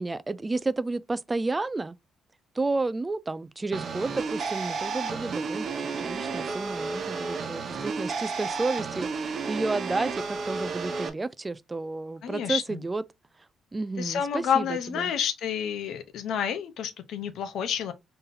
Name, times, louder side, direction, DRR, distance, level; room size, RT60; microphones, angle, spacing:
voice 1, 0.0-2.0 2.6-5.7 6.0-13.0 13.7-14.7 15.0-15.1, right 3 dB, 20° right, 0.3 m, -31 dB
sound 1, 3.7-11.1, right 5 dB, 55° right, 1.0 m, -32 dB
voice 2, 12.2-12.8 14.0-17.9, left 8 dB, 75° left, 0.7 m, -29 dB
3.9 x 3.9 x 2.6 m
cardioid pair, 90°, 0 cm